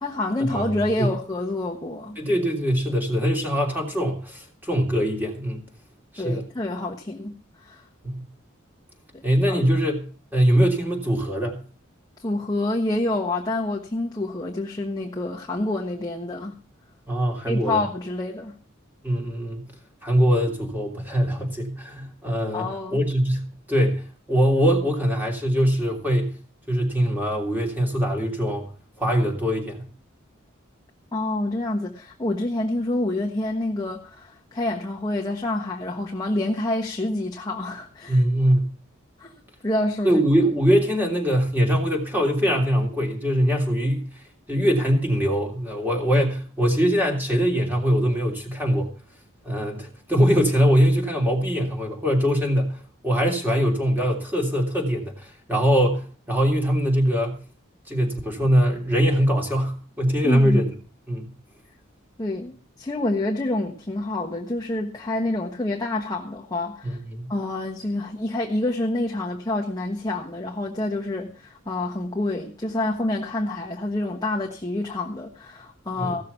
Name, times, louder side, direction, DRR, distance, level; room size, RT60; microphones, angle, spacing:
voice 1, 0.0-2.2 6.2-7.3 7.6-7.8 9.1-9.6 12.2-16.6 17.4-18.5 22.5-23.0 31.1-38.2 39.2-39.3 39.6-40.1 60.2-60.6 62.2-67.0 67.3-76.2, left 2 dB, 20° left, 1.3 m, -27 dB
voice 2, 2.2-5.6 6.1-6.4 8.0-8.2 9.2-10.1 10.3-11.6 17.1-17.8 19.0-19.6 20.0-26.3 26.7-28.6 29.0-29.8 38.1-38.7 40.0-44.1 44.5-48.9 49.4-52.8 53.0-57.4 57.9-60.7 61.1-61.3 66.8-67.3 76.0-76.2, equal, 10° right, 3.2 m, -22 dB
16.0 x 6.8 x 6.9 m
head